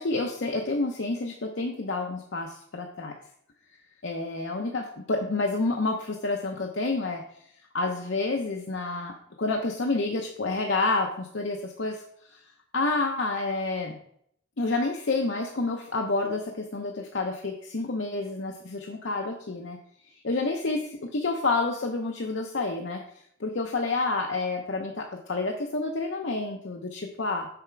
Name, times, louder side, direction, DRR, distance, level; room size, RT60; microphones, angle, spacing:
voice 1, 0.0-3.1 4.0-7.2 7.7-12.0 12.3-12.4 12.7-14.0 14.6-19.8 20.2-23.0 23.4-27.5, left 3 dB, 65° left, 2 dB, 0.7 m, -29 dB
7.0 x 5.9 x 4.6 m, 0.70 s
head